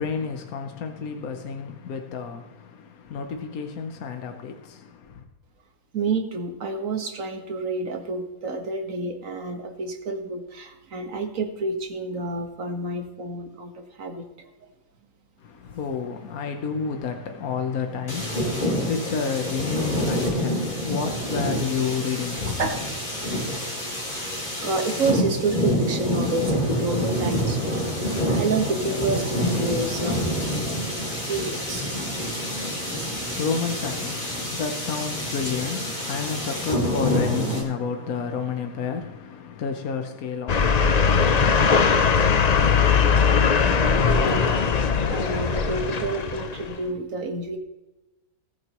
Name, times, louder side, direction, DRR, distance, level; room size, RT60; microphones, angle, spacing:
voice 1, 0.0-5.3 15.4-22.6 32.5-41.2, left 6 dB, 70° left, 1.4 m, -30 dB
voice 2, 5.9-14.5 22.4-22.8 23.5-23.6 24.6-32.1 43.9-44.7 45.1-47.6, right 3 dB, 60° right, 1.8 m, -29 dB
sound 1, 18.1-37.6, equal, 30° left, 3.7 m, -27 dB
sound 2, 40.5-46.8, left 5 dB, 50° left, 0.4 m, -20 dB
19.0 x 9.2 x 3.1 m
omnidirectional pair, 1.6 m